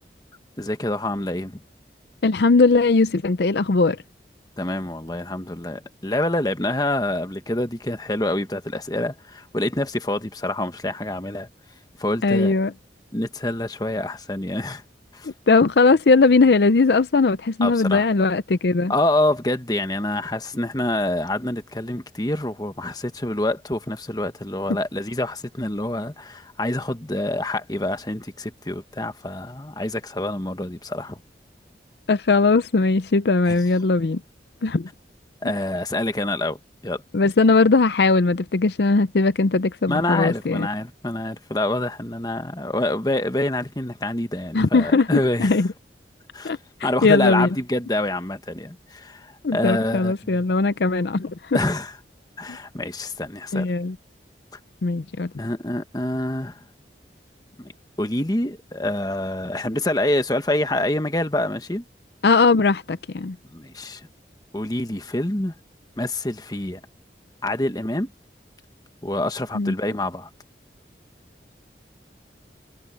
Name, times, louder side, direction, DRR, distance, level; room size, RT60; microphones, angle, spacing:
voice 1, 0.6-1.6 4.6-11.5 12.0-12.5 13.1-14.8 15.1-15.3 17.6-18.1 18.9-31.2 33.4-33.5 35.4-37.0 39.9-45.5 46.3-46.5 46.8-50.4 51.5-52.0 52.4-53.7 55.4-56.6 57.6-57.7 58.0-61.8 63.5-64.1 64.5-65.5 66.0-66.8 67.4-68.1 69.0-70.3, left 1 dB, 20° left, 1.3 m, -26 dB
voice 2, 2.2-4.0 12.2-12.7 15.2-18.9 32.1-34.2 34.6-34.9 37.1-40.7 44.5-45.7 46.4-46.6 47.0-47.5 49.4-51.6 52.5-52.6 53.5-54.0 54.8-55.3 62.2-63.4 69.5-69.7, left 3 dB, 70° left, 0.6 m, -19 dB
head